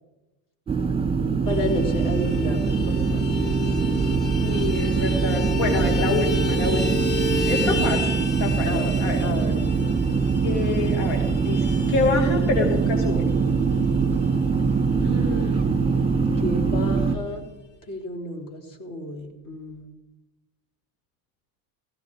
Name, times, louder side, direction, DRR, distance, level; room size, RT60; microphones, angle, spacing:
sound 1, 0.7-17.2, right 5 dB, 10° right, 2.0 m, -23 dB
voice 1, 1.4-3.2 3.8-3.9 7.6-7.9 8.7-8.9 9.2-9.6 15.0-15.7 16.4-17.4 17.9-19.8, left 1 dB, 40° left, 2 dB, 4.0 m, -31 dB
Vehicle horn car horn honking, 1.5-15.4 15.6-15.8 16.1-16.3 16.5-17.2, left 4 dB, 20° left, 3.0 m, -33 dB
voice 2, 4.4-6.8 7.5-8.0 8.4-8.7 9.0-9.2 10.4-11.2 11.5-13.2, left 4 dB, 70° left, 3 dB, 2.3 m, -26 dB
18.0 x 16.5 x 3.7 m, 1.0 s
supercardioid pair, 105°, 48 cm